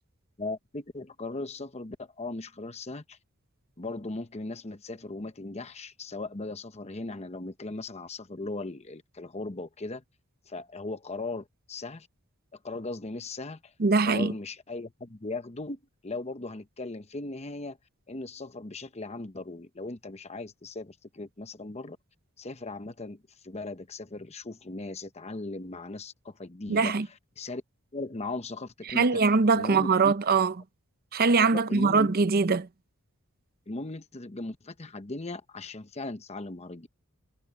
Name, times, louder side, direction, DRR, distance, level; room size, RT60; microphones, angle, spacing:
voice 1, 0.4-3.2 3.8-10.0 10.5-12.1 12.5-13.7 14.0-17.8 18.1-22.0 22.4-26.9 27.4-27.6 27.9-29.2 29.5-30.1 31.5-32.1 33.7-36.9, left 2 dB, 30° left, 0.9 m, -38 dB
voice 2, 13.8-14.3 26.7-27.1 28.9-30.5 31.1-32.7, right 4 dB, 45° right, 0.6 m, -22 dB
head